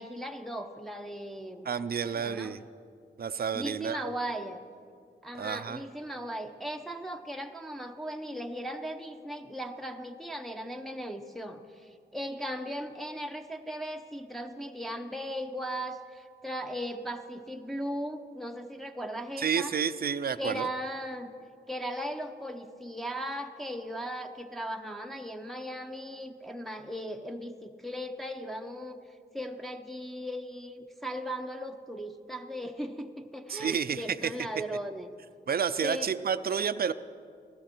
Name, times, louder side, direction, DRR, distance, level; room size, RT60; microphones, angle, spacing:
voice 1, 0.0-2.6 3.5-4.6 5.2-19.7 20.4-21.3 21.7-29.0 29.3-35.1 35.8-36.1, equal, ahead, 4 dB, 0.8 m, -37 dB
voice 2, 1.7-2.6 3.2-4.1 5.4-5.8 19.4-20.7 33.5-34.3 35.5-36.9, right 7 dB, 55° right, 13 dB, 0.5 m, -30 dB
15.5 x 13.0 x 4.4 m, 2.2 s
cardioid pair, 45°, 18 cm